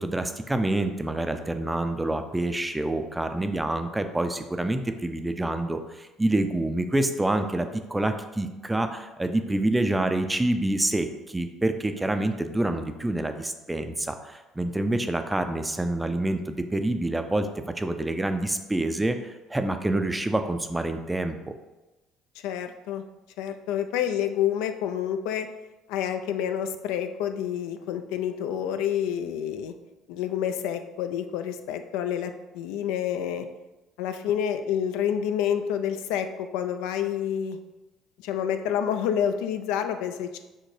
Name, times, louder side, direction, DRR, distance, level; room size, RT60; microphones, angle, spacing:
voice 1, 0.0-17.5 17.8-21.6, right 1 dB, 10° right, 8 dB, 0.4 m, -27 dB
voice 2, 22.4-23.0 23.4-25.5 25.9-29.7 30.1-33.5 34.0-37.6 38.2-40.4, left 9 dB, 85° left, 8 dB, 0.3 m, -28 dB
6.2 x 2.2 x 3.2 m, 1.1 s
supercardioid pair, 95°, 0 cm